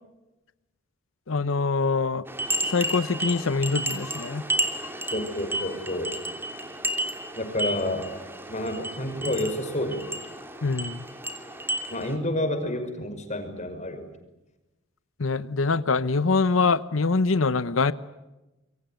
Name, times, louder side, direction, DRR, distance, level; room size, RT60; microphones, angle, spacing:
voice 1, 1.3-2.2 2.7-4.4 10.6-11.0 15.2-17.9, left 4 dB, 85° left, 16 dB, 0.9 m, -24 dB
sound 1, 2.3-12.1, right 1 dB, 10° right, 3.0 m, -32 dB
voice 2, 5.1-6.1 7.4-8.1 8.5-10.1 11.9-14.0, left 1 dB, 35° left, 7 dB, 5.7 m, -29 dB
27.0 x 23.5 x 9.3 m, 1.0 s
head